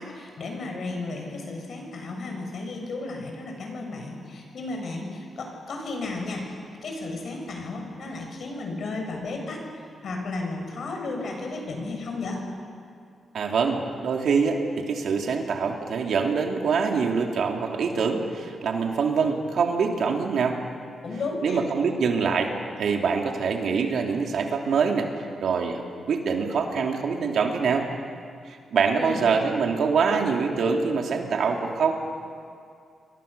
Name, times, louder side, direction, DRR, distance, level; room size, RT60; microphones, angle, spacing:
voice 1, 0.0-6.4 6.8-12.4 21.0-21.6 29.0-29.3, left 3 dB, 60° left, 2 dB, 7.0 m, -33 dB
voice 2, 13.3-20.6 21.4-25.1 25.4-27.9 28.5-31.9, right 5 dB, 70° right, 2 dB, 3.0 m, -24 dB
28.5 x 23.5 x 7.0 m, 2.3 s
wide cardioid pair, 130°, 0 cm